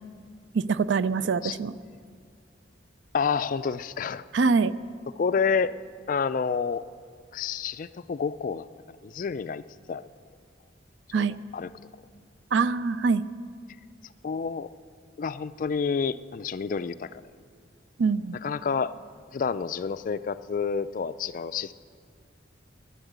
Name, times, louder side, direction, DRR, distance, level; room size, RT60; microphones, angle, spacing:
voice 1, 0.5-1.7 4.3-4.7 11.1-11.4 12.5-13.2 18.0-18.4, right 4 dB, 70° right, 16 dB, 0.4 m, -24 dB
voice 2, 1.2-1.6 3.1-4.2 5.2-5.7 6.1-6.8 7.3-9.6 9.9-10.0 11.2-11.3 11.5-11.7 14.2-14.7 15.2-17.1 18.4-18.9 19.3-21.7, left 5 dB, 45° left, 15 dB, 0.3 m, -29 dB
12.0 x 11.0 x 8.0 m, 2.1 s
head